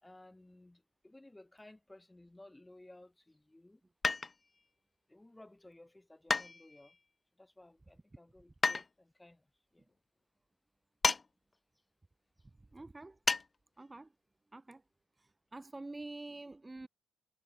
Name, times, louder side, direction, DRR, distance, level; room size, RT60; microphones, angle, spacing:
voice 1, 0.0-3.8 5.1-7.0 7.4-9.5 9.7-9.9, left 1 dB, 15° left, 4.1 m, -57 dB
sound 1, 4.0-4.6 6.3-7.0 8.6-8.9 11.0-11.3 11.5-11.6 13.3-13.5 13.8-13.9, left 4 dB, 30° left, 0.6 m, -31 dB
voice 2, 12.7-13.2 13.8-14.1 14.5-14.8 15.2-16.9, right 2 dB, 20° right, 0.9 m, -47 dB
hypercardioid pair, 45°, 0 cm